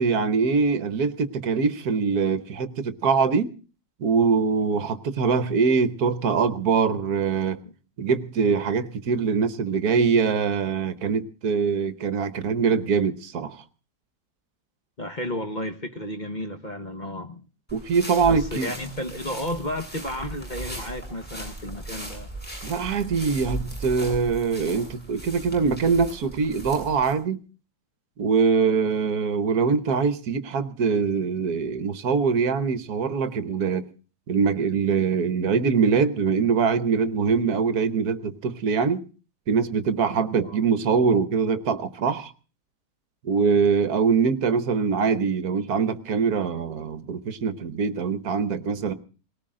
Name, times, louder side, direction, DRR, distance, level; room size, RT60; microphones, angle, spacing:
voice 1, 0.0-3.5 4.0-7.6 8.0-13.6 17.7-18.7 22.6-27.4 28.2-33.9 34.3-39.0 39.5-42.3 43.2-48.9, right 5 dB, 60° right, 1.4 m, -23 dB
voice 2, 15.0-17.4 18.3-22.3 40.4-40.6, left 1 dB, 30° left, 1.3 m, -33 dB
sound 1, 17.7-27.1, right 1 dB, 5° left, 7.5 m, -37 dB
19.5 x 18.5 x 3.7 m
omnidirectional pair, 1.9 m